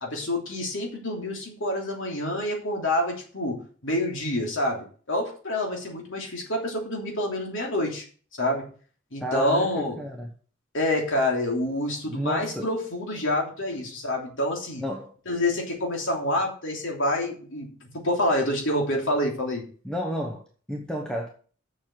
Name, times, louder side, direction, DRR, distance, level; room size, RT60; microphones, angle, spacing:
voice 1, 0.0-3.6 3.8-8.0 8.4-8.6 9.1-10.0 10.7-14.8 15.3-19.6, left 1 dB, 65° left, 1 dB, 3.1 m, -27 dB
voice 2, 9.2-10.3 12.1-12.7 14.8-15.1 19.8-21.3, equal, 5° left, 1 dB, 1.0 m, -31 dB
7.1 x 6.4 x 7.7 m, 0.43 s
head